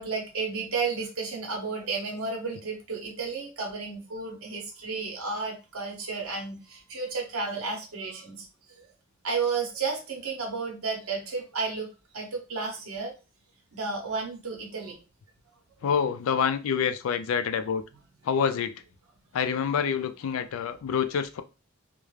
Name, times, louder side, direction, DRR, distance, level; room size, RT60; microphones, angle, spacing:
voice 1, 0.0-8.4 8.8-8.9 9.2-11.9 12.1-13.1 13.7-15.0, right 4 dB, 80° right, 0 dB, 0.8 m, -32 dB
voice 2, 15.8-17.8 18.2-18.7 19.3-21.4, left 7 dB, 75° left, 11 dB, 0.3 m, -27 dB
2.4 x 2.1 x 3.1 m, 0.30 s
head